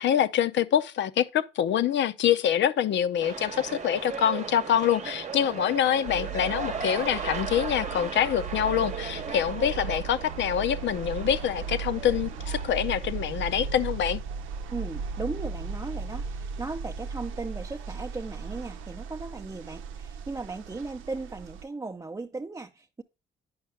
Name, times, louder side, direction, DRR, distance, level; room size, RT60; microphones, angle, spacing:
voice 1, 0.0-14.2, left 9 dB, 65° left, 0.6 m, -25 dB
sound 1, 3.2-14.1 14.5-14.6, right 5 dB, 35° right, 0.9 m, -37 dB
sound 2, 6.1-21.6, right 5 dB, 85° right, 0.7 m, -36 dB
voice 2, 14.7-23.0, right 3 dB, 15° right, 0.6 m, -37 dB
9.5 x 5.5 x 3.4 m
cardioid pair, 90°, 20 cm